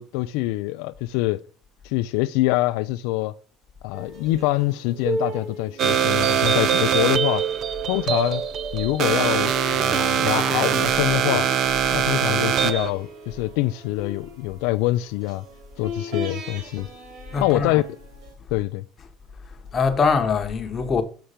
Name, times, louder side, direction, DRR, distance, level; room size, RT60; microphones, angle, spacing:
voice 1, 0.0-1.4 1.8-3.3 3.8-7.5 7.9-8.4 8.7-11.5 11.9-15.4 15.8-16.9 17.4-17.8 18.5-18.8, left 18 dB, 80° left, 0.3 m, -25 dB
sound 1, 3.9-18.3, equal, 70° right, 2.8 m, -37 dB
sound 2, 5.8-12.9, right 8 dB, 50° right, 0.4 m, -22 dB
voice 2, 17.3-17.8 19.5-21.0, left 5 dB, 30° left, 1.0 m, -23 dB
5.8 x 5.5 x 5.0 m
cardioid pair, 130°, 0 cm